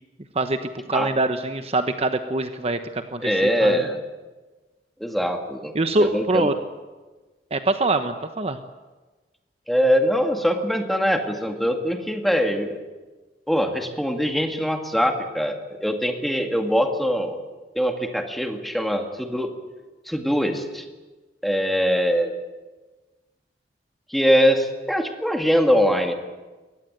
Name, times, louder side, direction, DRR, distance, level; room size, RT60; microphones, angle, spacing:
voice 1, 0.9-3.8 5.7-6.5 7.5-8.6, right 2 dB, 35° right, 8 dB, 1.0 m, -24 dB
voice 2, 3.2-4.0 5.0-5.7 6.0-6.5 9.7-12.8 13.5-17.4 17.8-19.5 20.1-20.8 21.4-22.4 24.1-26.2, equal, ahead, 4 dB, 2.2 m, -22 dB
22.5 x 18.0 x 9.1 m, 1.2 s
head